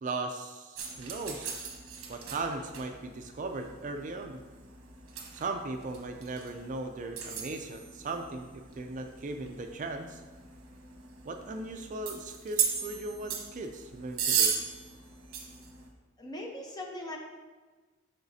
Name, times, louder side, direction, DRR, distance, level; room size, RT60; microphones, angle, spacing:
voice 1, 0.0-1.7 2.1-4.4 5.3-10.2 11.2-14.5, right 3 dB, 35° right, 5 dB, 0.4 m, -38 dB
sound 1, 0.8-15.9, right 7 dB, 80° right, 1.0 m, -37 dB
voice 2, 16.2-17.2, left 1 dB, 20° left, 0 dB, 0.8 m, -40 dB
11.5 x 4.0 x 2.7 m, 1.3 s
head